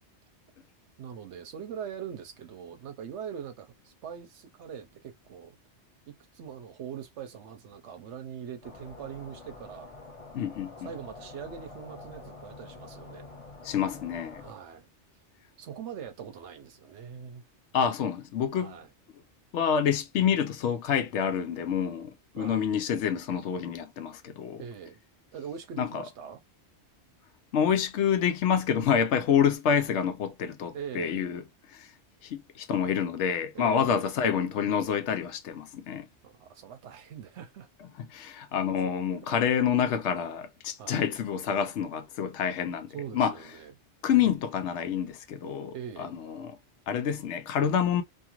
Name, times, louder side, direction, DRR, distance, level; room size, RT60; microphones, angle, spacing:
voice 1, 1.0-5.5 6.3-9.9 10.8-13.3 14.4-14.9 15.6-17.4 18.5-18.9 22.3-22.6 24.6-25.0 25.3-26.4 30.7-31.4 33.5-34.1 36.2-37.7 39.3-39.5 40.8-41.1 42.9-43.7 45.7-46.1, right 8 dB, 80° right, 0.9 m, -42 dB
sound 1, 8.6-14.5, left 3 dB, 35° left, 0.8 m, -47 dB
voice 2, 10.3-10.7 13.6-14.4 17.7-18.7 19.5-24.6 25.8-25.9 27.5-31.4 31.7-31.9 32.2-36.1 38.0-43.3 44.0-46.5 46.9-48.0, left 8 dB, 80° left, 0.9 m, -27 dB
2.5 x 2.4 x 2.9 m
omnidirectional pair, 1.2 m